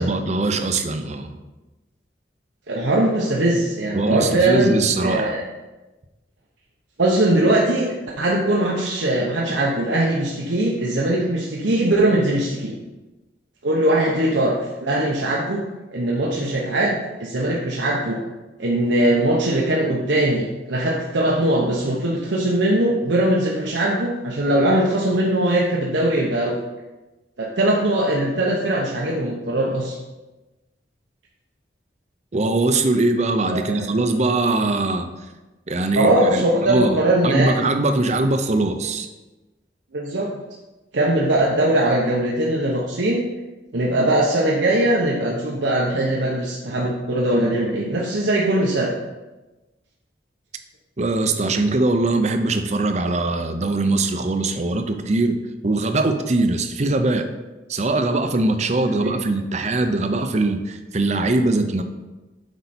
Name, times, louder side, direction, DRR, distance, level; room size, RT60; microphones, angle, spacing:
voice 1, 0.0-1.3 3.9-5.3 32.3-35.1 35.7-39.1 51.0-55.4 55.6-57.2 57.7-61.8, right 2 dB, 40° right, 7 dB, 0.6 m, -21 dB
voice 2, 2.7-4.8 5.0-5.4 7.0-12.7 13.6-15.6 15.9-18.2 18.6-26.6 27.4-29.9 33.5-34.1 35.9-37.5 39.9-40.3 40.9-43.3 43.7-48.9 59.0-59.2, right 1 dB, 80° right, -3 dB, 0.9 m, -21 dB
8.0 x 5.4 x 4.3 m, 1.1 s
head